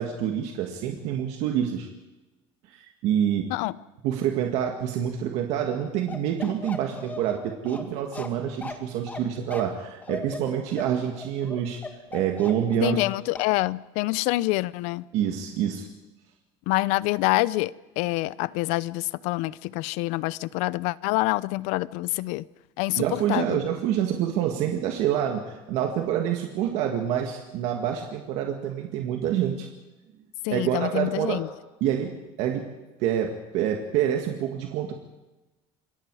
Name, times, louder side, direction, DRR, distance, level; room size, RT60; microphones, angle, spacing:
voice 1, 0.0-1.9 2.7-3.5 4.0-11.8 12.1-13.1 15.1-15.9 22.9-29.7 30.5-31.4 31.8-32.7 33.0-34.9, right 9 dB, 60° right, 2.1 m, -27 dB
Bark, 6.1-13.1 13.3-13.5, left 3 dB, 15° left, 2.0 m, -38 dB
voice 2, 12.8-15.0 16.7-22.4 22.8-23.6 30.4-31.5, left 20 dB, 75° left, 0.7 m, -26 dB
27.0 x 22.5 x 4.9 m
cardioid pair, 170°, 12 cm